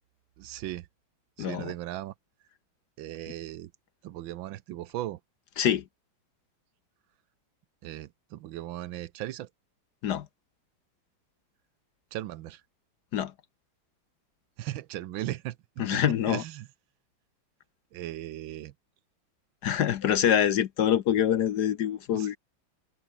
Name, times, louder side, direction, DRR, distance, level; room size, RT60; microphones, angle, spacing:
voice 1, 0.4-0.9 1.4-2.1 3.0-3.7 4.0-5.2 7.8-9.5 12.1-12.6 14.6-15.6 15.9-16.0 16.3-16.7 17.9-18.7 22.1-22.4, right 14 dB, 75° right, 1.5 m, -37 dB
voice 2, 1.4-1.7 5.6-5.8 10.0-10.3 13.1-13.3 15.8-16.4 19.6-22.4, left 10 dB, 60° left, 1.2 m, -25 dB
omnidirectional pair, 2.2 m